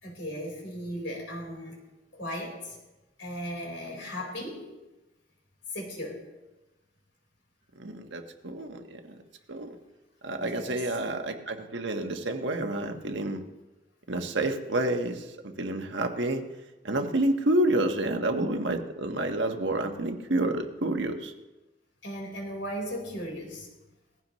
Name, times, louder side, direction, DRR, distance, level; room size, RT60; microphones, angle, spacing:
voice 1, 0.0-1.8 2.1-2.8 3.2-4.6 5.7-6.2 10.4-10.8 22.0-23.7, equal, 75° left, -1 dB, 4.5 m, -36 dB
voice 2, 7.8-9.2 9.5-9.8 10.2-13.4 14.1-15.2 15.6-16.4 16.8-21.3, right 1 dB, 65° right, 4 dB, 1.4 m, -29 dB
19.5 x 15.5 x 3.1 m, 1.1 s
head